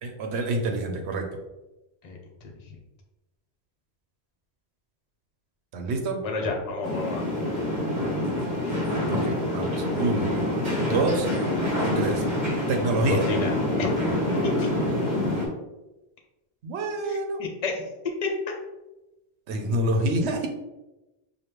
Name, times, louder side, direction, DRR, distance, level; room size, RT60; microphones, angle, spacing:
voice 1, 0.0-1.3 5.7-6.2 9.1-10.3 10.9-11.3 11.8-12.2 12.7-13.3 16.6-17.4 19.5-20.5, right 2 dB, 90° right, 4 dB, 0.9 m, -27 dB
voice 2, 6.2-7.3 13.1-13.5 13.8-13.9 14.6-14.7 17.1-17.8 18.2-18.3, left 4 dB, 40° left, 1 dB, 0.7 m, -29 dB
sound 1, 6.8-15.5, left 1 dB, 45° right, 1.1 m, -26 dB
4.9 x 2.3 x 3.0 m, 1.0 s
omnidirectional pair, 1.1 m